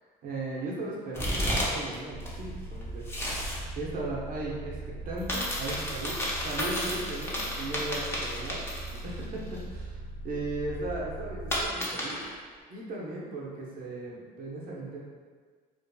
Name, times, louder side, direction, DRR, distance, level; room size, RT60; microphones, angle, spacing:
voice 1, 0.2-3.2 3.8-12.2 12.7-15.1, right 2 dB, 55° right, -4 dB, 0.6 m, -37 dB
sound 1, 1.1-2.0 2.2-3.6 5.2-9.2 9.5-9.6 11.5-12.3, equal, 15° left, 0.6 m, -32 dB
sound 2, 2.1-11.7, right 1 dB, 30° left, 0.9 m, -40 dB
2.6 x 2.5 x 2.2 m, 1.6 s
cardioid pair, 110°, 17 cm